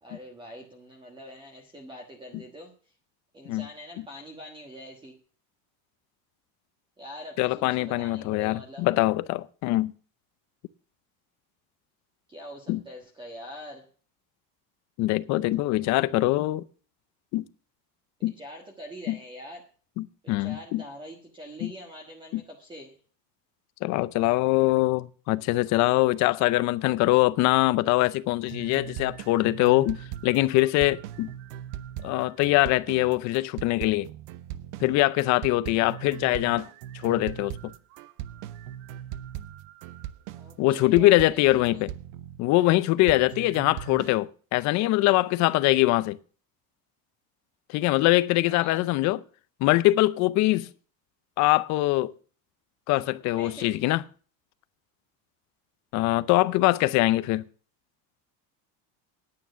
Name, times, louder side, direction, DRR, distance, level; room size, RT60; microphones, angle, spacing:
voice 1, 0.0-2.9 3.3-5.1 7.0-8.8 12.3-13.9 15.5-16.3 18.3-19.6 20.2-22.9 40.3-41.4 41.7-41.8 43.4-43.5 48.4-48.9 50.4-50.7 53.4-53.7, equal, 10° right, 1.4 m, -44 dB
voice 2, 7.4-9.9 12.7-12.8 15.0-16.6 17.3-17.5 18.2-18.3 19.1-19.2 20.0-20.8 21.6-21.7 22.3-22.4 23.8-31.3 32.0-34.1 34.8-36.7 36.9-37.5 40.6-41.9 42.4-46.2 47.7-49.2 49.6-50.7 51.4-52.1 52.9-54.0 55.9-57.4, left 18 dB, 45° left, 0.6 m, -23 dB
sound 1, 28.5-42.7 43.1-44.2, right 12 dB, 75° right, 0.8 m, -40 dB
9.5 x 8.8 x 6.8 m
cardioid pair, 170°, 39 cm